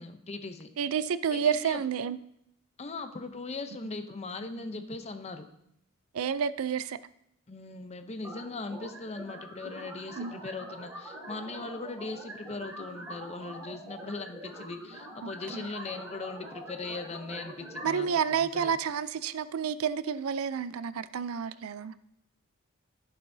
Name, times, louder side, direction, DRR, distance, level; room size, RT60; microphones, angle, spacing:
voice 1, 0.0-0.7 1.3-1.8 2.8-5.5 7.5-18.1 18.4-18.8, left 3 dB, 30° left, 8 dB, 0.6 m, -39 dB
voice 2, 0.8-2.2 4.6-4.7 6.1-7.0 10.2-10.3 15.5-15.7 17.8-21.9, right 7 dB, 85° right, 15 dB, 0.4 m, -30 dB
sound 1, 8.2-18.2, right 1 dB, 10° right, 3.8 m, -44 dB
15.5 x 6.8 x 2.7 m, 0.77 s
head